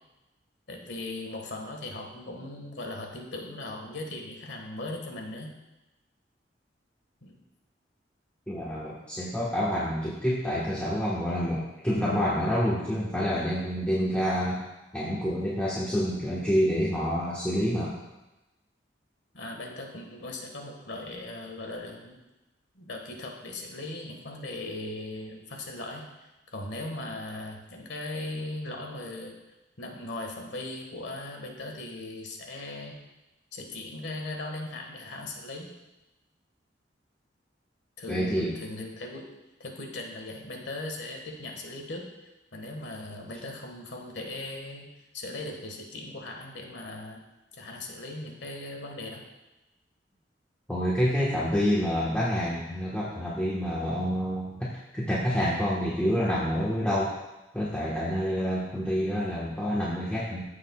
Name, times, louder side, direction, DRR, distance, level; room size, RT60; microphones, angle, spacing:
voice 1, 0.7-5.5 7.2-7.4 19.3-22.2 22.7-29.3 29.8-33.0 33.5-35.7 38.0-39.3 39.6-42.1 42.5-44.9 45.1-47.2 47.5-49.2, left 2 dB, 70° left, 2 dB, 1.6 m, -38 dB
voice 2, 8.5-14.6 14.9-17.9 38.1-38.5 50.7-54.7 54.9-57.1 57.5-60.4, equal, 5° left, -8 dB, 1.4 m, -27 dB
15.5 x 6.7 x 2.4 m, 1.0 s
head